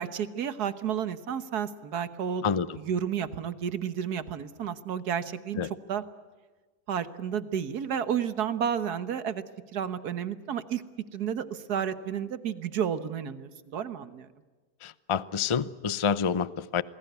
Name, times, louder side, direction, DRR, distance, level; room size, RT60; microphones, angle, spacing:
voice 1, 0.0-2.4 2.7-5.6 5.9-6.0 6.9-9.4 9.7-10.8 11.1-14.3, right 8 dB, 70° right, 13 dB, 1.7 m, -31 dB
voice 2, 14.8-16.8, left 6 dB, 50° left, 17 dB, 0.3 m, -28 dB
27.5 x 20.0 x 8.1 m, 1.4 s
omnidirectional pair, 1.8 m